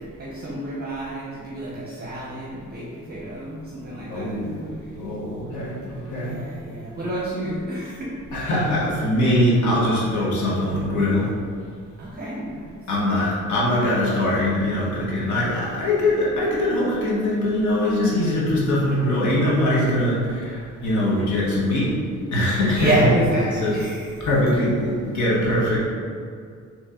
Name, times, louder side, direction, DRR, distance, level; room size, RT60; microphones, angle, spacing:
voice 1, 0.2-4.4 6.1-8.1 12.0-12.8 22.8-24.0, right 1 dB, 30° right, -6 dB, 0.9 m, -28 dB
voice 2, 4.1-4.7 4.9-6.4 8.3-11.3 12.9-21.9 22.3-23.2 23.5-23.8 24.2-25.8, left 1 dB, 70° left, -5 dB, 1.2 m, -22 dB
4.1 x 3.2 x 3.7 m, 2.2 s
cardioid pair, 90°, 30 cm